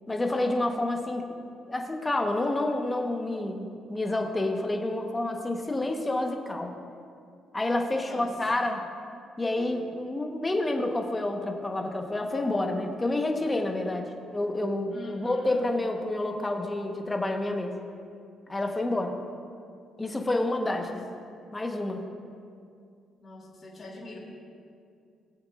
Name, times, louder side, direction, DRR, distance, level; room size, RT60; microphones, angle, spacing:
voice 1, 0.1-1.3 1.7-6.7 7.5-8.8 9.4-17.8 18.5-19.2 20.0-21.0 21.5-22.1, left 2 dB, 20° left, 3 dB, 1.2 m, -29 dB
voice 2, 8.0-8.7 14.9-15.6 20.7-21.0 23.2-24.2, left 1 dB, 35° left, -4 dB, 2.8 m, -44 dB
19.5 x 8.0 x 2.5 m, 2.4 s
cardioid pair, 90°, 0 cm